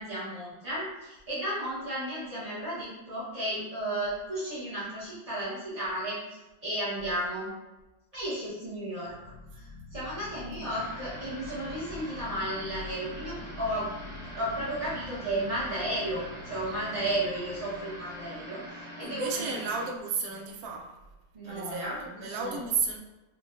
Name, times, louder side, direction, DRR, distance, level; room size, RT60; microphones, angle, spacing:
voice 1, 0.0-7.5 8.1-9.1 9.5-13.9 14.4-18.6 19.0-19.7 21.3-22.6, right 1 dB, 30° right, -11 dB, 0.7 m, -34 dB
sound 1, 9.0-18.8, left 3 dB, 85° left, 1.3 m, -47 dB
sound 2, 10.7-19.9, equal, 5° right, 0.8 m, -44 dB
voice 2, 19.0-20.9 21.4-21.9 22.2-23.0, right 5 dB, 70° right, 1 dB, 1.0 m, -32 dB
5.7 x 2.3 x 2.4 m, 1.1 s
omnidirectional pair, 2.0 m